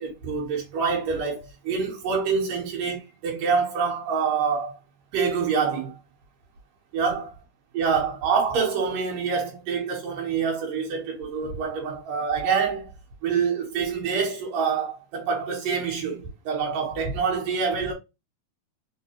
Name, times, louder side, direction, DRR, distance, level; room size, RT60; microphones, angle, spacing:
voice 1, 0.0-4.8 5.1-6.0 6.9-7.2 7.7-12.9 13.2-17.9, right 5 dB, 70° right, 2.8 m, -26 dB
6.0 x 2.3 x 2.9 m
omnidirectional pair, 4.0 m